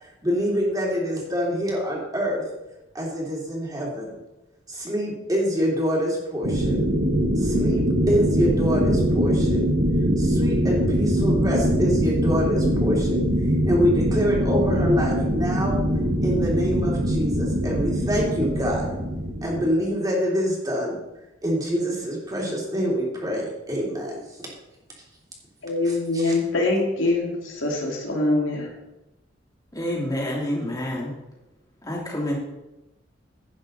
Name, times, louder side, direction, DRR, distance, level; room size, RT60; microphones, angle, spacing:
voice 1, 0.0-2.4 2.9-4.1 4.7-6.8 7.4-9.7 10.2-13.2 13.6-15.8 16.2-18.9 19.4-21.0 21.4-24.4 25.8-26.3, equal, 20° right, -3 dB, 3.0 m, -26 dB
sound 1, 6.4-19.8, equal, 50° right, 1.3 m, -22 dB
voice 2, 25.6-28.7, left 2 dB, 85° left, -1 dB, 2.5 m, -24 dB
voice 3, 29.7-31.1 31.8-32.4, left 1 dB, 20° left, -3 dB, 3.0 m, -28 dB
11.5 x 8.9 x 4.0 m, 0.96 s
head